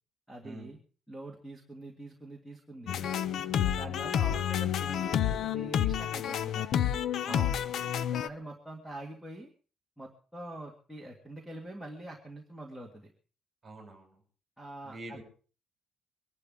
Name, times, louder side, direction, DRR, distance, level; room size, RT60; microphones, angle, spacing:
voice 1, 0.3-0.8 1.1-3.1 3.6-6.7 8.1-9.5 10.0-13.1 14.6-15.2, right 1 dB, ahead, -2 dB, 2.0 m, -44 dB
sound 1, 2.9-8.3, left 10 dB, 55° left, 0.6 m, -29 dB
voice 2, 7.3-7.9 13.6-14.2 14.8-15.2, right 2 dB, 15° right, 2 dB, 5.9 m, -45 dB
24.0 x 11.5 x 3.7 m, 0.38 s
cardioid pair, 165°, 0 cm